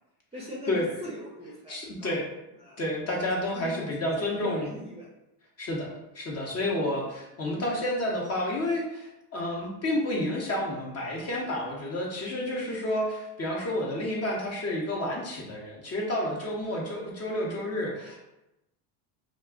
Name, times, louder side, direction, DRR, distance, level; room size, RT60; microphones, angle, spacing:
voice 1, 0.3-2.2 2.6-2.8 3.5-3.8 4.2-5.1 6.6-7.0, equal, 15° right, -5 dB, 0.6 m, -41 dB
voice 2, 1.7-2.3 2.8-4.7 5.6-18.2, left 1 dB, 30° left, -2 dB, 0.8 m, -30 dB
2.4 x 2.2 x 3.6 m, 0.91 s
supercardioid pair, 90°, 48 cm